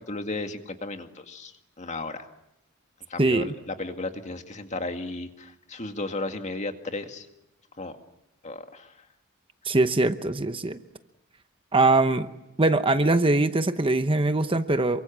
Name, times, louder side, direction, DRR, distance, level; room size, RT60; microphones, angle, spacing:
voice 1, 0.1-2.3 3.1-7.3 7.8-8.0 8.4-8.9, left 2 dB, 35° left, 6 dB, 2.1 m, -34 dB
voice 2, 3.2-3.5 9.6-10.8 11.7-12.3 12.6-15.0, right 2 dB, 25° right, 9 dB, 0.9 m, -22 dB
28.0 x 24.5 x 7.4 m, 0.91 s
head